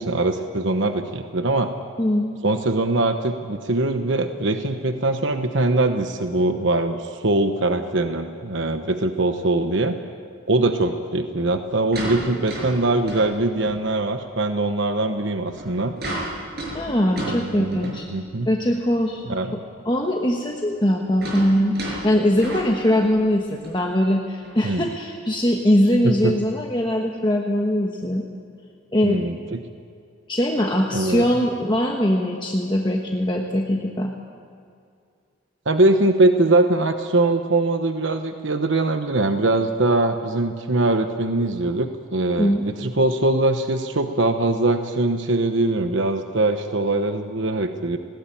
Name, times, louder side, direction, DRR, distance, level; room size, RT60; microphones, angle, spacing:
voice 1, 0.0-1.7 2.4-10.0 10.5-15.9 17.2-18.5 19.3-19.6 24.6-24.9 26.0-26.3 29.0-29.6 30.9-31.3 35.6-48.0, right 2 dB, 70° right, 7 dB, 1.0 m, -22 dB
voice 2, 2.0-2.3 16.7-18.1 18.5-19.2 19.8-21.7 22.0-28.3 28.9-29.2 30.3-34.1 42.4-42.6, equal, 25° left, 0 dB, 1.2 m, -21 dB
sound 1, 9.3-9.4 11.3-13.9 14.4-14.5 15.4-18.2 18.8-18.9 19.1-19.2 20.5-23.3 23.6-23.8 24.4-24.5, right 1 dB, 50° right, 6.4 m, -33 dB
19.5 x 18.5 x 9.1 m, 2.3 s
head